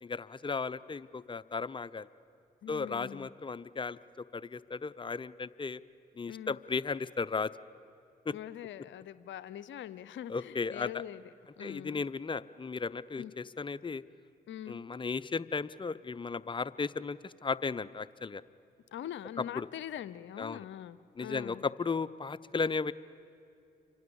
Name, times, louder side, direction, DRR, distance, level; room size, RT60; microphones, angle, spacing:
voice 1, 0.0-2.1 2.7-5.8 6.2-7.5 8.3-8.4 10.3-11.0 11.6-14.0 14.7-18.4 19.4-19.7 20.4-20.7 21.2-22.9, left 4 dB, 25° left, 15 dB, 0.7 m, -35 dB
voice 2, 2.6-3.3 6.3-6.6 8.3-11.2 11.6-12.0 13.2-13.3 14.5-14.8 18.9-21.6, left 11 dB, 65° left, 16 dB, 0.7 m, -43 dB
30.0 x 25.5 x 7.1 m, 2.6 s
hypercardioid pair, 40°, 21 cm